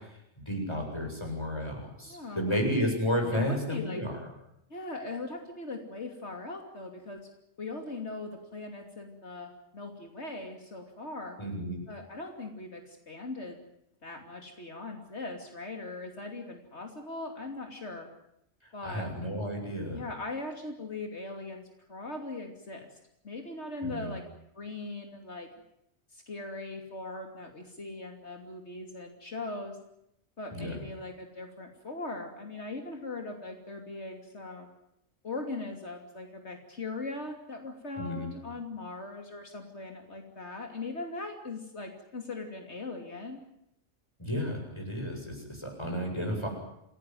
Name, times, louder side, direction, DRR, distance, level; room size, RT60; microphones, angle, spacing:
voice 1, 0.0-4.3 11.4-11.8 18.8-20.0 23.8-24.1 30.5-30.8 38.0-38.3 44.2-46.5, equal, 25° left, 2 dB, 7.9 m, -32 dB
voice 2, 2.1-2.6 3.3-4.0 4.7-7.2 7.6-11.4 11.9-13.6 14.0-18.1 18.7-19.1 19.9-22.9 23.2-24.2 24.5-25.5 26.1-29.8 30.4-34.7 35.2-43.4, left 3 dB, 75° left, 3 dB, 3.2 m, -40 dB
28.0 x 18.0 x 9.3 m, 0.79 s
omnidirectional pair, 1.2 m